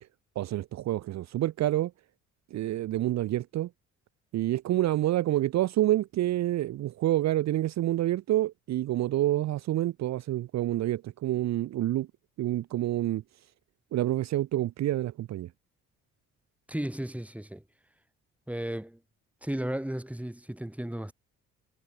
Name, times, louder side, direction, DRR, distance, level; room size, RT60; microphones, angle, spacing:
voice 1, 0.4-1.9 2.5-3.7 4.3-12.1 12.4-13.2 13.9-15.5, right 14 dB, 60° right, 0.6 m, -28 dB
voice 2, 16.7-17.6 18.5-19.0 19.4-21.1, right 1 dB, 5° right, 5.0 m, -34 dB
cardioid pair, 90°, 30 cm